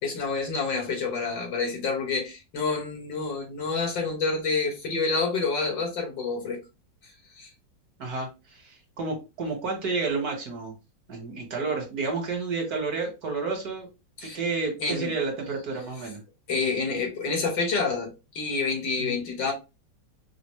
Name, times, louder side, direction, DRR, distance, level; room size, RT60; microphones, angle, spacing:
voice 1, 0.0-6.6 7.4-7.5 14.2-14.4 14.8-15.1 16.5-19.5, left 4 dB, 80° left, 2.1 m, -28 dB
voice 2, 8.0-10.7 11.1-13.9 14.2-16.2 19.0-19.2, right 4 dB, 60° right, 1.7 m, -30 dB
4.9 x 2.0 x 3.0 m
omnidirectional pair, 2.0 m